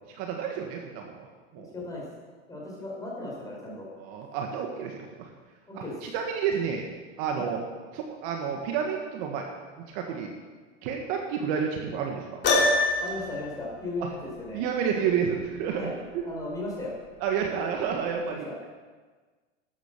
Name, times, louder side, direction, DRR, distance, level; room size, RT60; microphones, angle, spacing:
voice 1, 0.2-1.3 1.5-1.7 3.9-5.3 5.7-6.8 7.2-7.6 7.9-9.5 9.9-10.3 10.8-12.4 14.5-15.9 16.1-16.2 17.2-18.5, right 7 dB, 45° right, 2 dB, 1.7 m, -30 dB
voice 2, 1.5-2.1 2.5-3.9 5.7-6.0 7.3-7.5 12.5-12.6 13.0-14.6 15.7-15.9 16.2-16.9 18.2-18.5, left 2 dB, 10° left, -4 dB, 5.1 m, -36 dB
Piano, 12.4-13.3, left 2 dB, 25° left, 2.8 m, -22 dB
12.5 x 9.1 x 6.8 m, 1.4 s
supercardioid pair, 135°, 38 cm